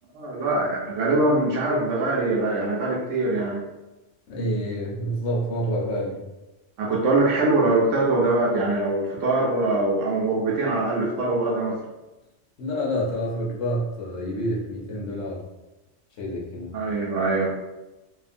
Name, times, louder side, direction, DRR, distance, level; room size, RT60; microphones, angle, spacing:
voice 1, 0.1-3.6 6.8-11.8 16.7-17.5, right 2 dB, 75° right, -3 dB, 0.9 m, -23 dB
voice 2, 4.3-6.2 12.6-15.4 16.2-16.7, equal, 75° left, -3 dB, 1.1 m, -28 dB
2.7 x 2.4 x 2.5 m, 1.0 s
omnidirectional pair, 1.3 m